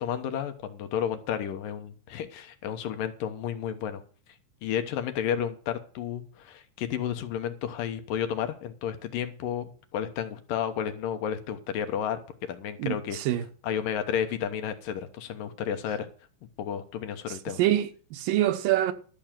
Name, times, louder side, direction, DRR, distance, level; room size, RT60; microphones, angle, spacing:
voice 1, 0.0-4.0 4.6-12.2 12.5-13.2 13.6-16.1 16.6-17.6, left 9 dB, 75° left, 2.8 m, -32 dB
voice 2, 12.8-13.4 17.6-18.9, right 13 dB, 80° right, 2.6 m, -25 dB
12.5 x 6.9 x 7.5 m
omnidirectional pair, 4.0 m